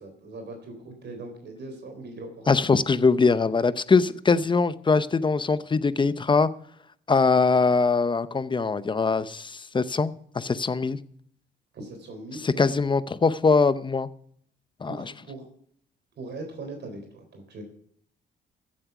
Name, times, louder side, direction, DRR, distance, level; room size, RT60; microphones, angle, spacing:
voice 1, 0.0-2.5 11.7-12.7 14.9-15.4 16.2-17.6, right 2 dB, 60° right, 4 dB, 3.6 m, -40 dB
voice 2, 2.5-6.5 7.1-11.0 12.4-14.1 14.8-15.0, left 4 dB, 25° left, 15 dB, 0.7 m, -22 dB
15.0 x 7.6 x 5.9 m, 0.65 s
cardioid pair, 90°, 20 cm